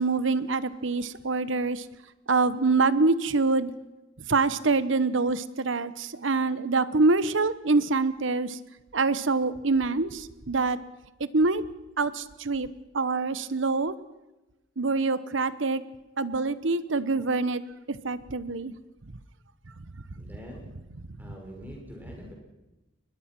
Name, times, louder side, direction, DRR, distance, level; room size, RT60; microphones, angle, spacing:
voice 1, 0.0-1.8 2.3-3.7 4.3-8.6 8.9-10.8 11.2-11.6 12.0-12.7 12.9-13.9 14.8-15.8 16.2-17.6 17.9-18.7, right 3 dB, 70° right, 15 dB, 1.0 m, -25 dB
voice 2, 20.2-20.7 21.2-22.3, equal, 10° right, 0 dB, 5.7 m, -44 dB
22.5 x 21.0 x 6.1 m, 1.0 s
head